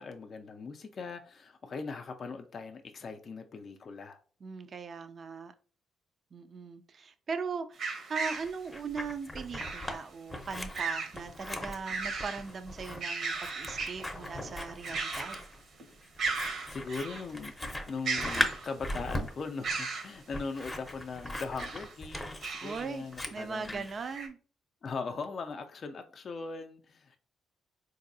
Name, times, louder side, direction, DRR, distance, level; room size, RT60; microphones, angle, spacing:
voice 1, 0.0-4.2 16.4-23.8 24.8-27.2, left 4 dB, 50° left, 0.4 m, -40 dB
voice 2, 4.4-5.5 6.3-15.4 22.6-23.1 23.3-24.4, right 5 dB, 45° right, 0.3 m, -39 dB
sound 1, 7.8-8.5 9.6-10.0 10.7-11.2 11.6-12.4 12.8-14.1 14.8-15.5 15.8-15.9 16.2-17.2 18.0-18.9 19.6-20.1 21.4-21.9 22.4-22.9 23.4-23.5 24.1-24.3, right 4 dB, 60° right, 0.8 m, -36 dB
Scissors, 8.4-10.0 10.3-23.9, left 1 dB, 15° left, 0.6 m, -39 dB
3.9 x 2.6 x 2.6 m
cardioid pair, 90°, 0 cm